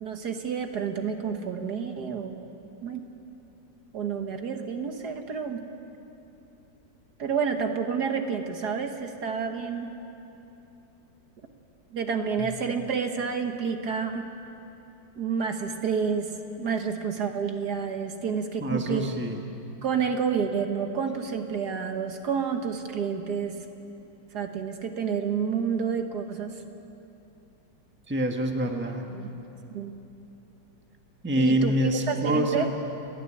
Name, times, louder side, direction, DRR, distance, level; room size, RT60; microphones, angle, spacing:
voice 1, 0.0-2.4 2.8-3.1 3.9-5.6 7.2-9.9 11.9-14.3 15.2-16.3 16.6-19.1 19.8-23.6 24.3-26.5 29.1-29.3 29.7-29.9 31.4-32.7, right 6 dB, 60° right, 5 dB, 1.7 m, -29 dB
voice 2, 18.6-19.4 28.1-29.0 31.2-32.7, equal, 5° right, 3 dB, 1.3 m, -26 dB
29.5 x 11.0 x 9.9 m, 3.0 s
omnidirectional pair, 2.0 m